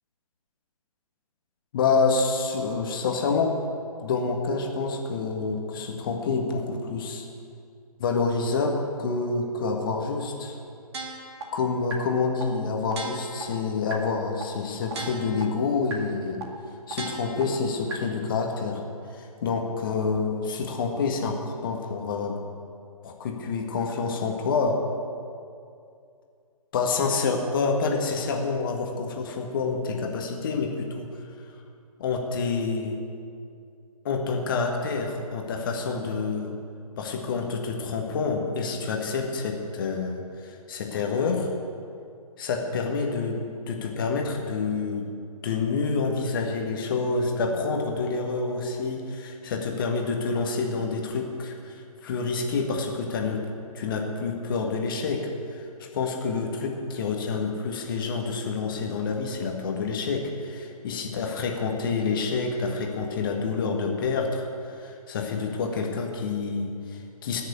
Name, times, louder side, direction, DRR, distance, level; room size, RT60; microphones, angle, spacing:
voice 1, 1.7-3.5 4.0-7.2 8.0-10.6 11.5-16.4 16.9-18.8 19.1-22.4 23.0-24.8 26.7-31.0 32.0-33.0 34.0-36.5 37.0-41.5 42.4-43.4 43.7-45.1 45.4-53.4 53.7-64.4 64.8-67.4, left 4 dB, 35° left, 1 dB, 1.7 m, -28 dB
sound 1, 10.9-11.4 11.9-12.0 12.4-12.5 12.9-13.4 13.9-14.0 14.4-14.5 14.9-15.4 15.9-16.0 16.4-16.5 16.9-17.4 17.9-18.0, right 4 dB, 45° right, 2.0 m, -34 dB
19.0 x 6.6 x 8.2 m, 2.4 s
figure-of-eight pair, 135°, 20 cm